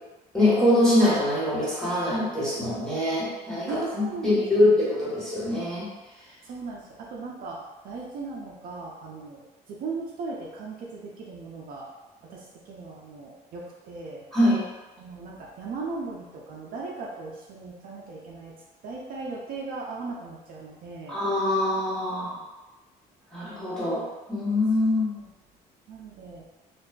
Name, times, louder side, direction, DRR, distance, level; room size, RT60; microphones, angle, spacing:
voice 1, 0.3-5.9 14.3-14.6 21.1-22.3 23.3-24.0 24.3-25.1, left 1 dB, 5° left, -9 dB, 1.1 m, -23 dB
voice 2, 3.7-4.7 6.4-7.6 7.8-9.4 9.7-11.9 12.3-14.2 15.0-18.5 18.8-21.2 25.9-26.4, right 3 dB, 60° right, -3 dB, 0.5 m, -37 dB
2.5 x 2.2 x 2.3 m, 1.1 s
cardioid pair, 110°, 17 cm